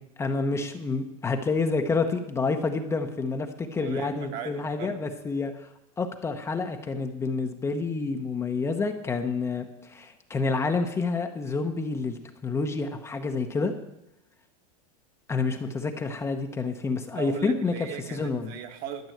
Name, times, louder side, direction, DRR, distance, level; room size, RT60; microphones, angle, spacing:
voice 1, 0.2-5.7 6.0-13.7 15.3-17.7 18.1-18.5, left 4 dB, 15° left, 6 dB, 0.8 m, -28 dB
voice 2, 3.8-5.0 17.1-19.1, right 8 dB, 50° right, 5 dB, 1.6 m, -38 dB
12.0 x 6.1 x 9.1 m, 0.85 s
supercardioid pair, 140°, 18 cm